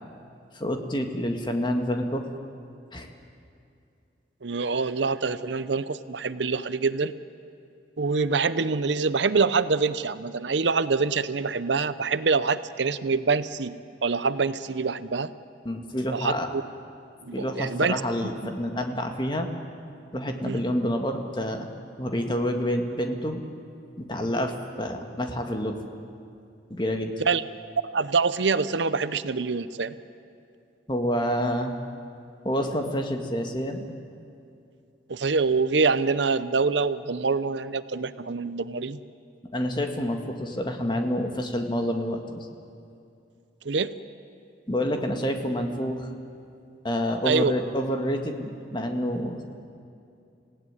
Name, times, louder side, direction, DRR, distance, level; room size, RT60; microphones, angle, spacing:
voice 1, 0.5-2.3 2.9-3.1 15.6-16.5 17.3-19.5 20.1-21.7 22.0-23.4 24.0-25.8 26.7-27.1 30.9-31.7 32.4-33.9 39.5-42.5 44.7-46.1 46.8-49.4, equal, 25° left, 4 dB, 1.9 m, -28 dB
voice 2, 4.4-7.1 8.0-13.8 14.0-15.3 16.1-16.6 17.2-18.0 20.4-20.6 27.3-27.4 27.9-29.9 35.1-39.0 43.6-43.9 47.2-47.5, right 4 dB, 75° right, 14 dB, 0.8 m, -25 dB
27.0 x 17.0 x 9.8 m, 2.6 s
head